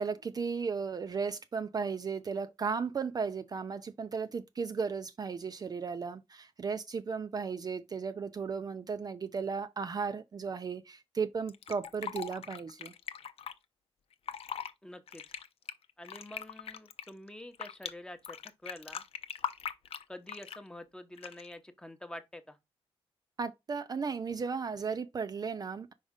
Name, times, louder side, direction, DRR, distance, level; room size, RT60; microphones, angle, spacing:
voice 1, 0.0-12.9 23.4-25.9, right 5 dB, 40° right, 0.5 m, -35 dB
Fill (with liquid), 11.5-13.5 14.1-14.7 15.1-17.9 18.2-20.7 21.2-21.6, left 8 dB, 70° left, 0.6 m, -40 dB
voice 2, 14.8-15.2 16.0-18.4 18.6-19.0 20.1-22.6, left 1 dB, 5° left, 0.8 m, -47 dB
5.2 x 5.0 x 3.6 m
wide cardioid pair, 135°, 10 cm